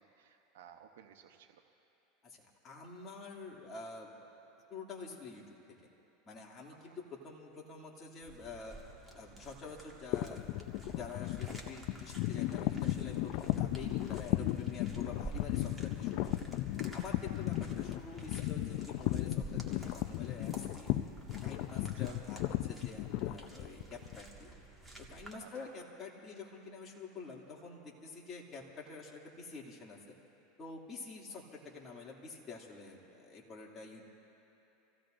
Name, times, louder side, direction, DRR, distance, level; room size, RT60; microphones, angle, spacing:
voice 1, 0.0-1.6 17.3-17.4 21.8-22.2 25.4-25.5, right 8 dB, 85° right, 5 dB, 0.9 m, -57 dB
voice 2, 2.2-4.2 4.7-5.6 6.2-8.8 9.1-21.0 21.4-24.5 25.0-30.0 30.6-34.0, left 4 dB, 30° left, -2 dB, 2.6 m, -48 dB
sound 1, 8.2-25.3, right 3 dB, 5° right, 1.9 m, -51 dB
sound 2, 10.1-24.2, left 15 dB, 60° left, 0.5 m, -35 dB
28.0 x 16.0 x 2.6 m, 2.9 s
supercardioid pair, 115°, 0 cm